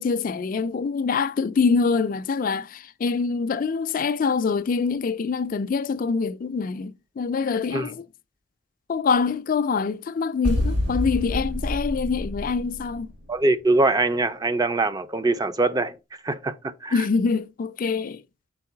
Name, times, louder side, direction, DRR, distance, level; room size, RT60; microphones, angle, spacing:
voice 1, 0.0-8.0 8.9-13.1 16.9-18.2, left 5 dB, 45° left, 0.3 m, -25 dB
sound 1, 10.4-13.2, left 1 dB, 60° right, 1.8 m, -27 dB
voice 2, 13.3-16.0 16.2-16.5 16.8-17.1, right 2 dB, 20° right, 0.4 m, -23 dB
4.7 x 4.5 x 5.5 m
head